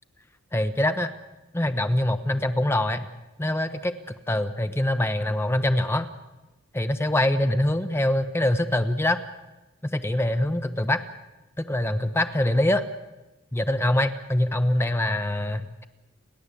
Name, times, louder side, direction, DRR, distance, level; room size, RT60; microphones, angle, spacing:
voice 1, 0.5-1.1 1.5-3.1 3.4-3.9 4.3-6.1 6.7-9.2 9.8-11.0 11.6-12.8 13.5-15.8, left 1 dB, 10° left, 9 dB, 0.8 m, -24 dB
30.0 x 11.5 x 8.4 m, 1.0 s
head